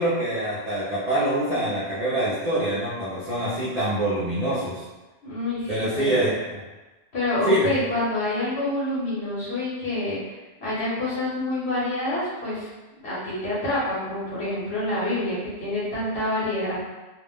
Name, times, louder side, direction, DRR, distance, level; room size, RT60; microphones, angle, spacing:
voice 1, 0.0-4.8 5.7-6.6 7.5-7.7, right 1 dB, 45° right, -10 dB, 0.6 m, -25 dB
voice 2, 5.2-6.3 7.1-10.2 10.6-12.7 13.0-16.8, left 1 dB, 65° left, -9 dB, 1.1 m, -27 dB
2.5 x 2.0 x 3.5 m, 1.2 s
omnidirectional pair, 1.2 m